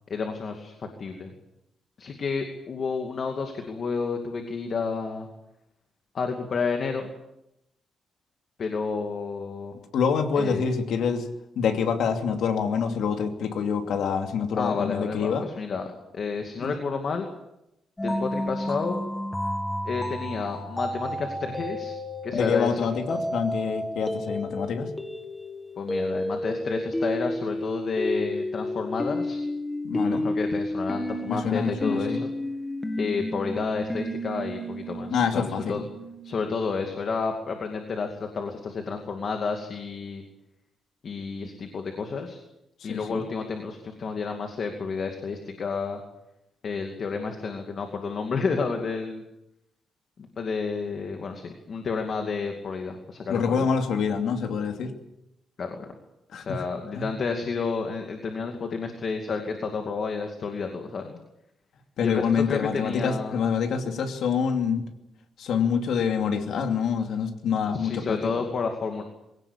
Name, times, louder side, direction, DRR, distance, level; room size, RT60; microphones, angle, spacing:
voice 1, 0.1-1.3 2.0-5.3 6.1-7.1 8.6-9.8 10.4-10.6 14.5-15.9 16.1-17.3 18.0-19.0 19.8-22.0 22.2-23.2 25.8-29.4 29.9-32.3 33.0-35.8 36.2-40.2 41.0-42.4 42.8-46.0 46.6-49.2 50.4-53.7 55.6-55.9 56.3-61.2 62.0-63.4 67.7-69.0, left 4 dB, 40° left, 4 dB, 2.5 m, -30 dB
voice 2, 9.9-11.3 11.6-15.5 16.6-16.7 22.3-24.9 29.8-30.2 31.3-32.2 35.1-35.8 42.9-43.2 53.3-54.9 56.3-56.4 57.0-57.1 62.0-64.9 65.4-68.2, left 6 dB, 70° left, 5 dB, 2.8 m, -26 dB
sound 1, 18.0-36.5, left 1 dB, 10° left, 2.0 m, -31 dB
22.5 x 17.5 x 8.8 m, 0.87 s
wide cardioid pair, 165°, 0 cm